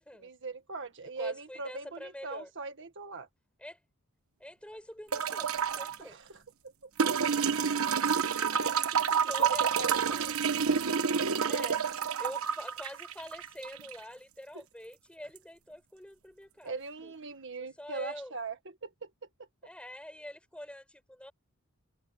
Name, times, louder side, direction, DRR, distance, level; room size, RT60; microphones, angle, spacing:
voice 1, 0.2-3.3 6.0-6.4 6.8-6.9 8.1-10.4 14.5-14.6 16.6-19.1, right 4 dB, 60° right, 1.7 m, -41 dB
voice 2, 1.2-2.5 3.6-3.8 4.4-6.2 9.0-10.3 11.4-11.8 12.2-16.7 17.0-17.1 17.6-18.3 19.6-21.3, left 1 dB, 5° left, 7.3 m, -45 dB
sound 1, 5.1-6.0 7.0-14.0 15.4-15.5, right 6 dB, 85° right, 1.2 m, -29 dB
head